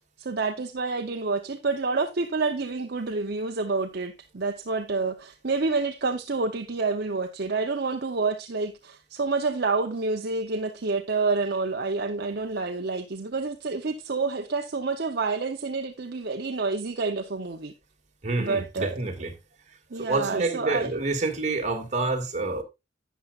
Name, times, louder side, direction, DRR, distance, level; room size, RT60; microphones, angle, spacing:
voice 1, 0.2-17.7 18.4-19.0 19.9-21.0, right 3 dB, 55° right, 0.8 m, -28 dB
voice 2, 18.2-19.3 19.9-22.6, right 3 dB, 40° right, 2.1 m, -28 dB
12.0 x 9.2 x 2.4 m
head